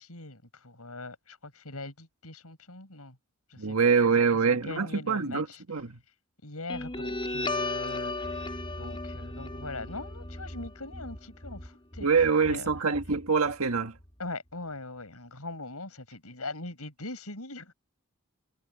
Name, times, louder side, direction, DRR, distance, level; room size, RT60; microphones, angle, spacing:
voice 1, 0.0-3.2 3.5-3.8 4.0-5.6 6.4-12.1 12.4-12.7 14.2-17.7, left 2 dB, 90° left, 7.4 m, -41 dB
voice 2, 3.6-6.0 12.0-13.9, right 5 dB, 80° right, 1.6 m, -25 dB
Guitar, 6.7-13.7, left 2 dB, 25° left, 5.2 m, -36 dB
head